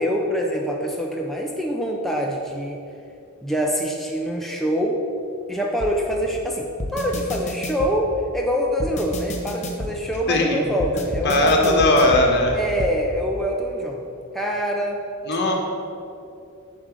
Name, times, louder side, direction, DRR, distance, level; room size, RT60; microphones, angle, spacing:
voice 1, 0.0-2.8 3.4-5.0 5.5-11.9 12.5-14.0 14.3-15.0, equal, ahead, -1 dB, 0.5 m, -25 dB
sound 1, 5.8-5.9 6.8-7.9 8.8-9.9 10.8-12.3 12.8-12.9, left 1 dB, 35° left, 0.8 m, -29 dB
voice 2, 10.3-10.6 11.2-12.6 15.2-15.5, left 2 dB, 55° left, 0 dB, 1.3 m, -18 dB
8.3 x 3.9 x 6.4 m, 2.6 s
head